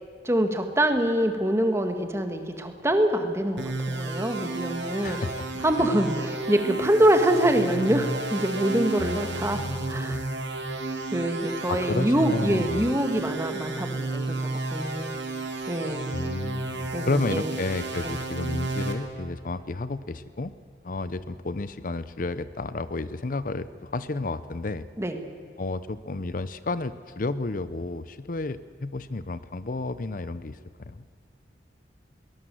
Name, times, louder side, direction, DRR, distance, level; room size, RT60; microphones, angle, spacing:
voice 1, 0.2-5.2 5.6-10.2 11.1-15.2 15.7-16.2 16.9-17.5 25.0-25.3, right 1 dB, 15° right, 6 dB, 1.8 m, -25 dB
sound 1, 3.6-18.9, right 2 dB, 85° right, 3.0 m, -32 dB
voice 2, 5.0-5.6 9.0-10.3 11.7-12.9 16.1-20.5 20.8-24.8 25.6-31.0, left 3 dB, 50° left, 15 dB, 0.6 m, -32 dB
22.0 x 19.5 x 7.7 m, 2.3 s
head